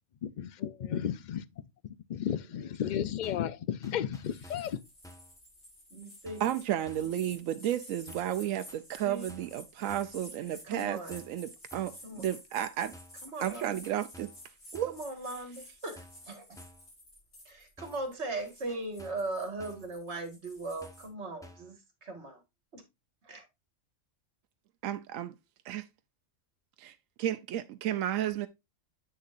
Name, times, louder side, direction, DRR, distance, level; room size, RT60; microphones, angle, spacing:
voice 1, 0.4-1.4 2.1-4.8, left 9 dB, 60° left, 0.5 m, -33 dB
voice 2, 2.5-3.0 5.9-6.4 9.0-9.3 10.6-11.2 12.0-12.3 13.2-13.8 14.9-16.6 17.5-22.4 22.7-22.8 23.2-23.5, right 2 dB, 60° right, 2.1 m, -39 dB
sound 1, 3.2-3.5 3.8-4.8 5.0-5.4 6.3-6.6 6.9-7.2 8.1-8.4 8.7-9.6 9.9-10.2 11.1-11.4 11.7-12.0 12.9-13.2 13.5-14.5 14.7-15.1 16.0-16.3 16.6-16.9 17.8-18.1 18.4-19.3 19.6-19.9 20.8-21.1 21.4-21.7, left 1 dB, 5° left, 1.0 m, -53 dB
sound 2, 4.2-21.1, left 1 dB, 80° left, 5.4 m, -52 dB
voice 3, 6.4-12.9 13.4-14.3 14.7-15.0 24.8-25.4 25.6-25.9 26.8-28.5, right 11 dB, 85° right, 1.0 m, -33 dB
8.2 x 6.5 x 2.5 m
omnidirectional pair, 1.3 m